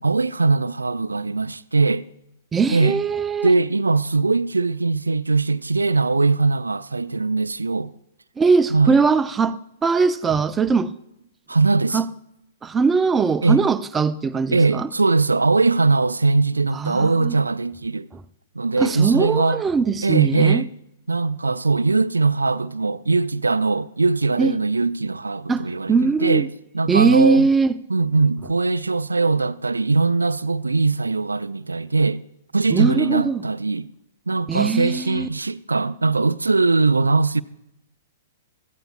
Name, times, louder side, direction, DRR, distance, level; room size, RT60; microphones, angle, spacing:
voice 1, 0.0-2.0 2.7-3.0 3.4-7.9 8.7-9.0 11.5-12.0 13.4-13.6 14.5-18.1 18.6-19.6 20.0-20.7 21.1-26.5 26.7-27.5 27.9-32.2 32.5-33.9 34.3-37.4, right 3 dB, 80° right, 0.4 m, -20 dB
voice 2, 2.5-3.5 8.4-10.9 11.9-12.1 12.6-14.9 16.7-17.4 18.1-18.2 18.8-20.7 24.4-24.6 25.5-26.5 26.9-27.7 32.7-33.4 34.5-35.3, right 5 dB, 15° right, 0.5 m, -20 dB
16.5 x 14.5 x 2.4 m
figure-of-eight pair, 110°, 0 cm